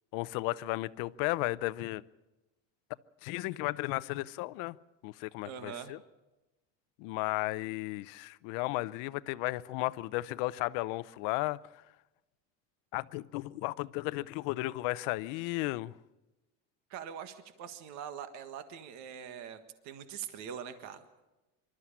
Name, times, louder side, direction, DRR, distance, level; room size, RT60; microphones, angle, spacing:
voice 1, 0.1-2.0 3.2-4.8 5.0-6.0 7.0-11.6 12.9-15.9, left 20 dB, 65° left, 17 dB, 0.7 m, -34 dB
voice 2, 5.4-5.9 16.9-21.0, right 8 dB, 50° right, 9 dB, 1.6 m, -43 dB
26.0 x 13.0 x 8.7 m, 1.1 s
cardioid pair, 160°, 35 cm